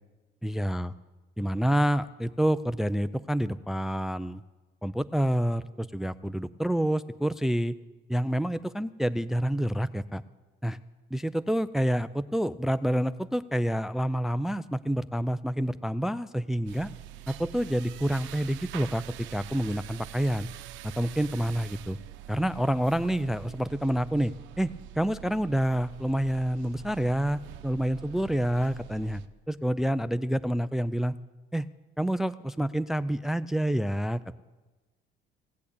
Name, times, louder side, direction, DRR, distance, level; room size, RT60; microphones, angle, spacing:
voice 1, 0.4-0.9 1.4-4.4 4.8-7.7 8.1-10.2 10.6-10.8 11.1-16.9 17.3-19.0 19.3-20.5 21.0-22.0 22.3-24.7 25.0-29.2 29.5-31.1 31.5-31.7 32.0-34.4, equal, ahead, 16 dB, 0.4 m, -28 dB
sound 1, 16.7-29.3, right 12 dB, 75° right, 0.8 m, -45 dB
17.0 x 8.5 x 8.5 m, 1.2 s
cardioid pair, 95°, 19 cm